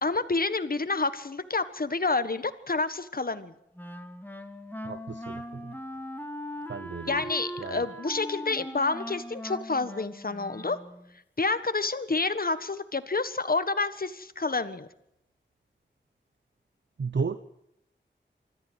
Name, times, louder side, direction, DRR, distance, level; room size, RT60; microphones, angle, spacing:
voice 1, 0.0-3.5 7.1-10.8 11.4-14.9, left 3 dB, 50° left, 12 dB, 1.5 m, -29 dB
Wind instrument woodwind instrument, 3.8-11.1, equal, 10° left, 2.1 m, -40 dB
voice 2, 4.8-5.8 6.7-7.2 7.6-7.8 17.0-17.4, right 5 dB, 70° right, 11 dB, 0.9 m, -33 dB
25.5 x 14.0 x 8.2 m, 0.80 s
wide cardioid pair, 65°, 19 cm